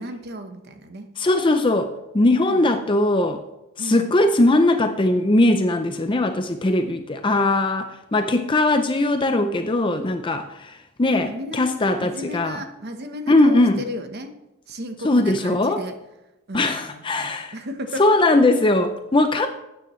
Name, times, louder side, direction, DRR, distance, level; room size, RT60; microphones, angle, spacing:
voice 1, 0.0-1.1 2.5-2.7 3.8-4.1 11.3-14.3 14.7-15.9 16.5-18.0, equal, 50° right, 6 dB, 1.1 m, -34 dB
voice 2, 1.2-3.4 3.8-12.6 13.3-13.8 15.0-15.8 16.5-17.5 18.0-19.5, left 2 dB, 20° left, 7 dB, 0.5 m, -20 dB
13.0 x 9.2 x 3.2 m, 0.94 s
head